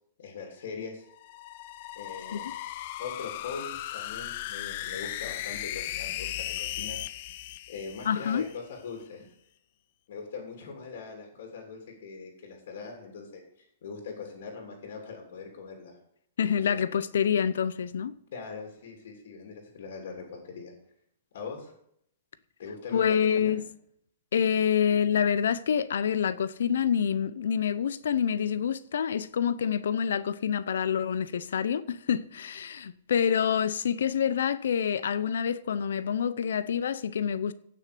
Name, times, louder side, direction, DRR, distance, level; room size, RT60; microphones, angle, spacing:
voice 1, 0.2-1.1 1.9-2.5 3.0-7.0 7.7-9.3 10.1-16.0 16.7-16.8 18.3-20.7 21.3-21.7 22.6-23.6, left 5 dB, 55° left, 3.0 m, -41 dB
sound 1, 1.1-8.6, left 14 dB, 35° left, 0.4 m, -37 dB
voice 2, 8.1-8.4 16.4-18.1 22.9-23.6 24.3-37.5, left 8 dB, 85° left, 0.7 m, -27 dB
16.0 x 6.5 x 5.2 m
hypercardioid pair, 180°, 0 cm